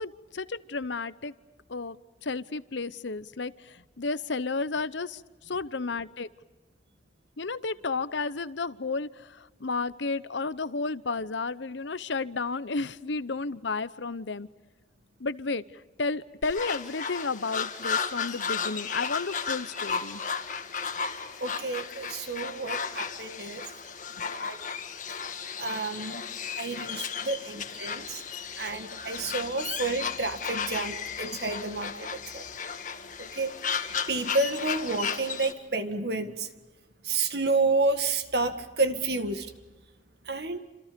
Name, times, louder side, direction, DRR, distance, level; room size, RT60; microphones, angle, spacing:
voice 1, 0.0-1.3 1.7-2.0 2.2-5.2 5.5-6.3 7.4-14.5 15.2-15.6 16.0-20.2, left 3 dB, 80° left, 15 dB, 0.9 m, -32 dB
sound 1, 16.4-35.5, left 6 dB, 45° left, 1.8 m, -34 dB
voice 2, 21.4-23.6 24.2-24.6 25.6-26.3 26.6-28.2 28.6-32.5 33.2-33.6 34.1-36.5 37.0-39.5 40.3-40.6, right 3 dB, 60° right, 8 dB, 1.9 m, -30 dB
28.5 x 27.0 x 5.3 m, 1.1 s
head